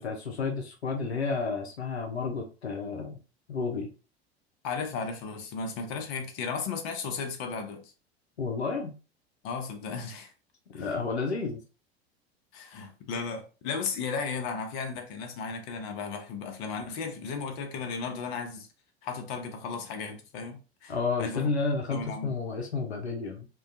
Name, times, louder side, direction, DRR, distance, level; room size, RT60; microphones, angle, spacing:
voice 1, 0.0-3.2 3.5-3.9 8.4-8.9 10.7-11.6 20.9-23.5, left 4 dB, 90° left, 0.5 m, -31 dB
voice 2, 4.6-7.9 9.4-10.3 10.7-10.9 12.5-18.7 19.0-20.9 21.2-21.5 21.9-22.3, left 5 dB, 45° left, 0.7 m, -35 dB
2.2 x 2.2 x 2.6 m
figure-of-eight pair, 80°, 32 cm